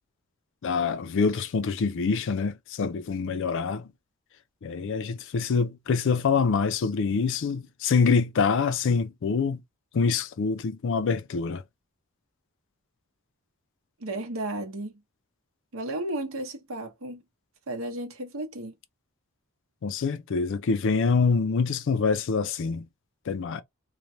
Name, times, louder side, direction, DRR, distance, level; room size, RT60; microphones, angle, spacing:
voice 1, 0.6-3.9 4.6-9.6 9.9-11.6 19.8-22.8 23.3-23.6, left 5 dB, 60° left, 0.4 m, -25 dB
voice 2, 14.0-15.0 15.7-17.2 17.7-18.7, right 1 dB, 70° right, 0.8 m, -33 dB
3.1 x 2.1 x 2.6 m
head